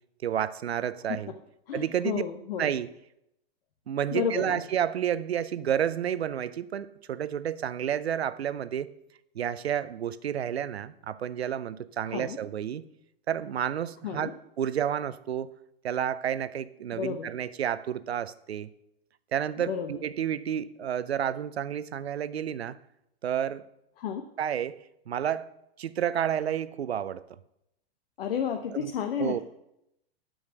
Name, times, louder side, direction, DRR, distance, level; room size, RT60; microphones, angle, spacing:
voice 1, 0.2-1.3 1.7-2.2 2.6-2.9 3.9-8.9 9.3-12.9 13.3-15.5 15.8-18.7 19.3-22.8 23.2-23.6 24.4-24.8 25.1-25.5 25.8-27.2 28.7-28.9 29.2-29.4, right 9 dB, 85° right, 16 dB, 0.7 m, -30 dB
voice 2, 1.7-2.7 4.1-4.6 12.1-12.4 14.0-14.3 16.9-17.3 19.6-20.0 24.0-24.2 28.2-29.4, left 7 dB, 65° left, 5 dB, 1.0 m, -32 dB
9.0 x 6.5 x 6.1 m, 0.82 s
hypercardioid pair, 115°, 31 cm